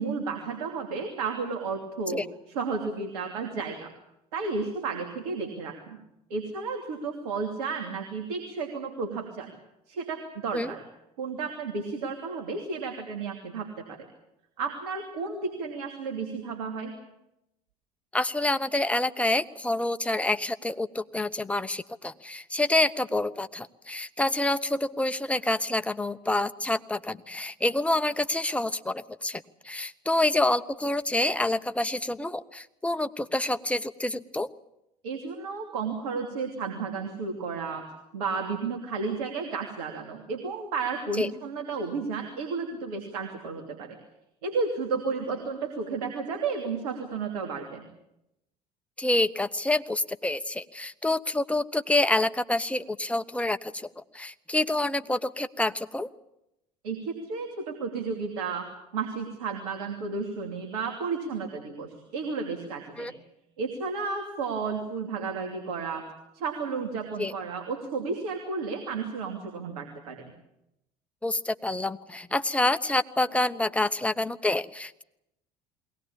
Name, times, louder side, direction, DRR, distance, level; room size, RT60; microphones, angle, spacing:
voice 1, 0.0-3.9 4.3-6.0 6.3-9.5 9.9-10.8 11.2-14.1 14.6-16.9 35.0-37.8 38.1-44.0 44.4-47.9 56.8-58.7 58.9-63.1 63.6-66.0 66.3-70.3, right 4 dB, 75° right, 2 dB, 2.8 m, -32 dB
voice 2, 18.1-34.5 41.2-41.3 49.0-56.1 63.0-63.1 67.2-67.3 71.2-75.0, left 2 dB, 5° left, 10 dB, 1.0 m, -27 dB
21.5 x 18.5 x 8.7 m, 0.86 s
hypercardioid pair, 70°, 20 cm